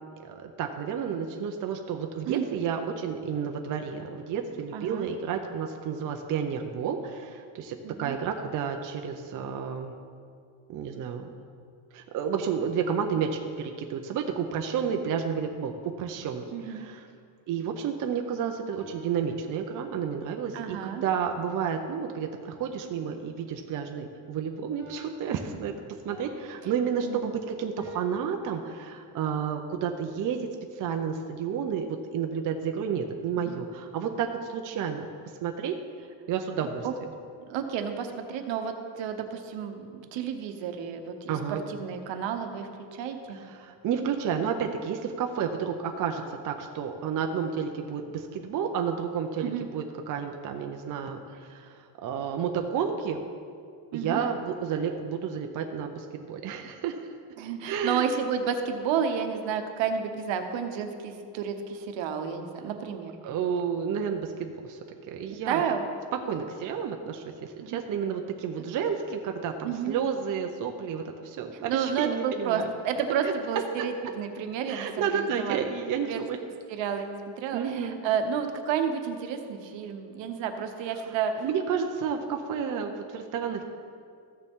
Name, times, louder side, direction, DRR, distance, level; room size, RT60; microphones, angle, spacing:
voice 1, 0.2-9.9 10.7-11.3 11.9-17.1 17.5-25.7 26.0-35.1 35.4-35.8 36.3-36.9 41.3-41.7 43.3-53.2 53.9-57.1 57.6-58.1 63.2-64.8 65.0-65.6 66.2-72.7 73.2-73.3 73.8-73.9 74.7-76.4 77.5-78.0 81.1-81.2 81.4-83.6, right 7 dB, 40° right, 4 dB, 0.6 m, -31 dB
voice 2, 4.7-5.1 7.8-8.1 16.5-16.9 20.5-21.0 27.0-27.3 33.4-33.6 36.8-36.9 37.5-43.4 49.4-49.7 53.9-54.2 57.4-63.2 65.3-65.9 67.6-67.8 69.6-70.0 71.5-75.6 76.0-76.2 76.7-81.4, right 7 dB, 60° right, 6 dB, 1.1 m, -31 dB
sound 1, 18.3-20.2 24.8-28.3, left 3 dB, 25° left, 2.8 m, -50 dB
14.5 x 6.6 x 3.6 m, 2.3 s
cardioid pair, 145°, 50 cm